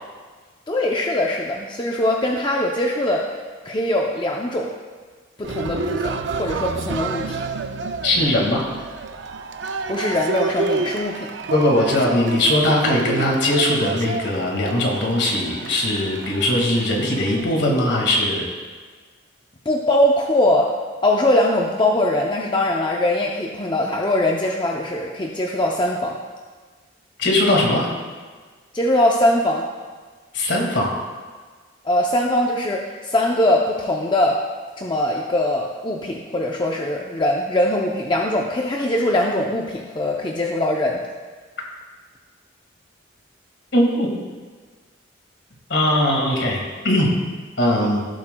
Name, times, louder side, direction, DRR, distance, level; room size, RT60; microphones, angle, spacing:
voice 1, 0.7-3.3 3.6-4.7 5.4-7.4 9.9-11.3 19.7-20.7 21.0-26.2 28.7-29.6 31.8-34.4 34.8-41.0, left 1 dB, 25° left, 0 dB, 0.5 m, -21 dB
Cheering, 5.4-17.4, right 4 dB, 65° right, 0.5 m, -29 dB
voice 2, 8.0-8.6 11.5-18.4 27.2-27.9 30.3-30.9 43.7-44.1 45.7-46.6 46.8-47.1 47.6-48.0, left 1 dB, 60° left, -1 dB, 1.9 m, -20 dB
16.5 x 7.5 x 2.2 m, 1.5 s
head